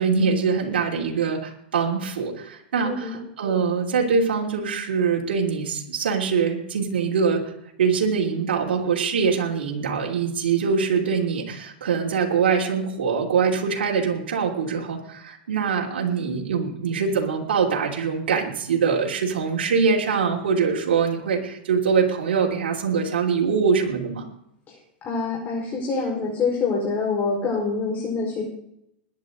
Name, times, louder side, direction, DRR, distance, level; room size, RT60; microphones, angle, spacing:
voice 1, 0.0-7.4 7.8-24.3, right 5 dB, 90° right, -2 dB, 3.1 m, -23 dB
voice 2, 2.8-3.2 24.7-24.8 25.0-28.5, left 4 dB, 30° left, -2 dB, 4.8 m, -26 dB
21.5 x 10.5 x 3.9 m, 0.75 s
hypercardioid pair, 125°, 6 cm